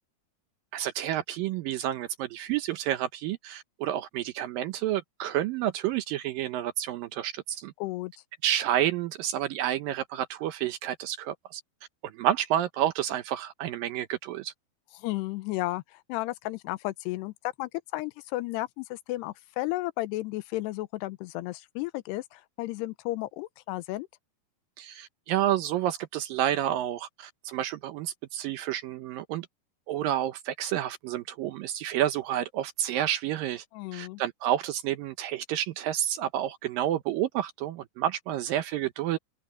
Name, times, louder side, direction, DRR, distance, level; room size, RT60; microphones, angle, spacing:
voice 1, 0.7-7.7 8.4-11.6 12.0-14.5 24.8-29.5 29.9-33.6 33.9-39.2, right 12 dB, 75° right, 2.2 m, -30 dB
voice 2, 7.8-8.1 15.0-17.3 17.6-24.1 33.7-34.2, left 18 dB, 85° left, 2.9 m, -33 dB
open air
omnidirectional pair, 4.7 m